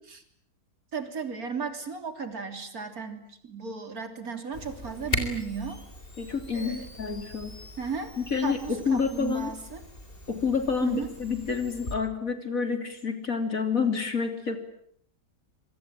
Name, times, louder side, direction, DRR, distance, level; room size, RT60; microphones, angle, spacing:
voice 1, 0.9-5.8 6.5-6.9 7.8-8.1 8.4-9.8 10.8-11.1, right 5 dB, 50° right, 7 dB, 3.8 m, -35 dB
Camera, 4.5-12.0, left 2 dB, 30° left, 4.2 m, -39 dB
voice 2, 6.2-7.6 8.2-9.5 10.3-14.6, left 5 dB, 50° left, 7 dB, 3.7 m, -28 dB
26.0 x 24.0 x 9.1 m, 0.66 s
omnidirectional pair, 1.9 m